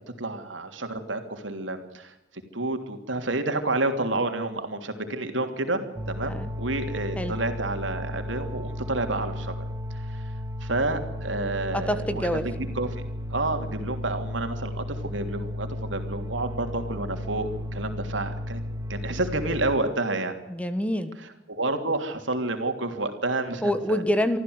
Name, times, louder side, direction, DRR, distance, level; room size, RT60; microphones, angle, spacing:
voice 1, 0.2-2.1 2.5-9.6 9.9-10.2 10.6-13.0 13.3-18.6 18.9-20.4 21.5-24.0, right 2 dB, 85° right, 6 dB, 3.1 m, -29 dB
sound 1, 5.9-19.8, left 1 dB, 20° right, 1.5 m, -34 dB
voice 2, 11.7-12.4 20.5-21.1 23.6-24.4, equal, 5° left, 10 dB, 1.4 m, -26 dB
25.5 x 14.0 x 8.1 m, 0.89 s
head